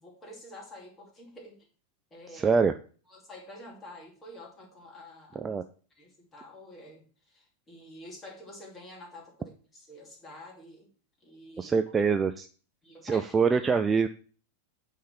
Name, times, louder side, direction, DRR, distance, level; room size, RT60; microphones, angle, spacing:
voice 1, 0.0-1.7 2.1-2.6 3.1-5.6 6.0-10.9 11.2-11.8 12.8-13.6, left 1 dB, 15° left, 0 dB, 2.5 m, -48 dB
voice 2, 2.3-2.7 5.4-5.6 11.6-12.5 13.0-14.1, right 5 dB, 15° right, 8 dB, 0.4 m, -24 dB
8.5 x 3.7 x 5.8 m, 0.41 s
figure-of-eight pair, 90°, 0 cm